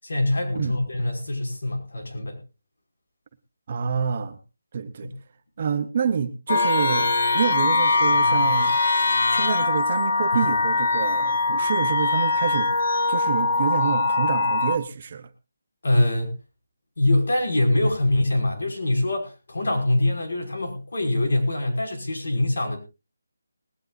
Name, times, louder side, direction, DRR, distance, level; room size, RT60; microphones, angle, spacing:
voice 1, 0.0-2.4 5.0-5.1 10.3-10.4 15.8-16.3 17.0-22.8, left 1 dB, 60° left, 2 dB, 5.8 m, -24 dB
voice 2, 3.7-4.4 4.7-5.1 5.6-8.8 9.3-12.7 13.1-15.3, right 6 dB, 25° right, 10 dB, 0.7 m, -27 dB
sound 1, 6.5-14.8, left 3 dB, 40° left, 1.1 m, -22 dB
20.0 x 16.0 x 2.6 m, 0.30 s
hypercardioid pair, 180°, 0 cm